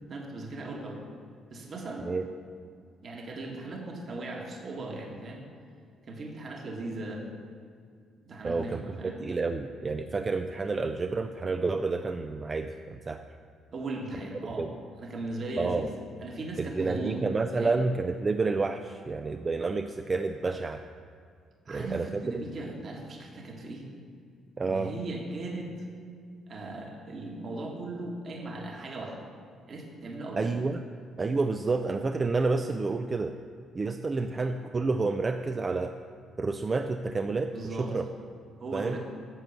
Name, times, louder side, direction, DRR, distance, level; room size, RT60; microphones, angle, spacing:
voice 1, 0.1-1.0 1.5-2.1 3.0-5.4 6.1-7.3 8.3-9.2 13.7-14.7 15.0-15.9 16.2-17.2 17.5-17.7 21.6-23.9 24.6-25.7 26.5-29.2 29.7-30.5 37.5-37.9 38.6-39.0, right 2 dB, 40° right, 0 dB, 1.7 m, -38 dB
voice 2, 8.4-8.8 9.2-13.2 14.6-14.7 15.6-15.9 16.6-20.8 21.7-22.4 24.6-24.9 30.4-30.8 31.2-33.4 33.7-35.9 36.4-38.0 38.7-39.0, right 3 dB, 25° right, 8 dB, 0.4 m, -29 dB
11.0 x 7.6 x 6.9 m, 2.2 s
cardioid pair, 130°, 0 cm